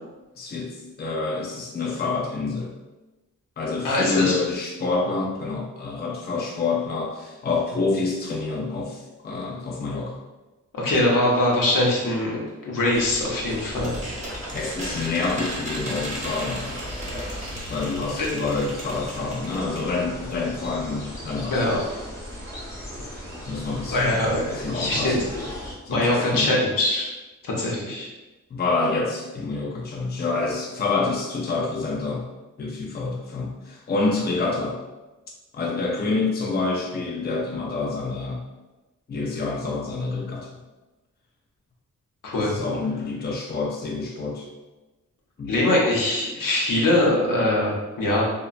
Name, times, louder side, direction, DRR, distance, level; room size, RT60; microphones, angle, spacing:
voice 1, 0.4-2.7 3.6-10.2 14.5-16.6 17.7-21.6 22.9-23.0 23.5-24.2 24.5-25.3 25.9-26.5 28.5-32.3 32.6-34.8 35.5-38.5 39.1-40.6 42.3-44.5 45.4-45.6, left 3 dB, 30° left, -1 dB, 0.4 m, -27 dB
voice 2, 3.8-4.4 10.7-13.9 18.2-18.3 21.5-21.8 23.9-25.4 25.9-27.1 27.4-28.1 42.2-42.5 45.5-48.3, left 1 dB, 85° left, -4 dB, 0.7 m, -22 dB
sound 1, 12.9-25.8, equal, 10° left, 0.8 m, -38 dB
sound 2, 13.1-20.0 20.3-20.4 20.6-20.7, right 1 dB, 20° right, 0.8 m, -36 dB
2.8 x 2.1 x 2.4 m, 1.1 s
cardioid pair, 60°, 32 cm